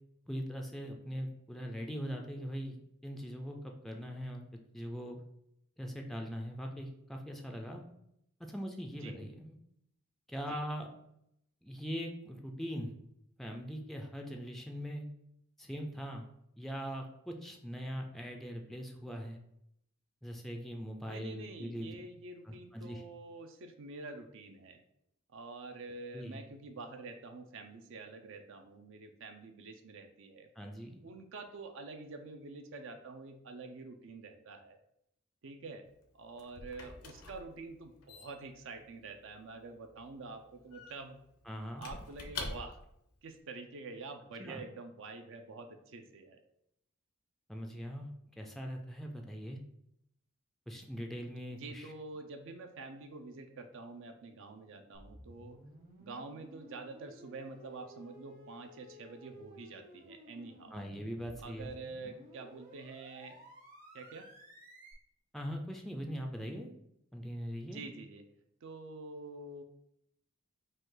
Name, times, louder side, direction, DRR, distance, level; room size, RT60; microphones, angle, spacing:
voice 1, 0.3-2.8 3.0-5.2 5.8-7.8 8.4-9.6 10.3-10.9 11.6-12.9 13.4-15.0 15.6-16.3 16.6-19.4 20.2-22.0 22.4-23.0 26.1-26.4 30.6-31.0 41.5-41.9 44.4-44.6 47.5-49.6 50.7-51.9 60.7-61.7 62.0-62.1 65.3-66.7 67.1-67.8, equal, ahead, 2 dB, 0.4 m, -41 dB
voice 2, 21.1-24.8 25.3-30.5 31.0-34.8 35.4-35.8 36.1-41.2 41.8-42.8 43.2-46.4 51.5-55.6 56.0-60.8 61.4-63.4 63.9-64.3 67.6-68.2 68.6-69.6, right 3 dB, 60° right, 6 dB, 0.5 m, -47 dB
Squeak / Wood, 35.9-43.0, left 3 dB, 80° left, 0.7 m, -47 dB
sound 1, 54.9-64.9, equal, 40° right, 1.0 m, -55 dB
5.3 x 2.3 x 3.8 m, 0.77 s
head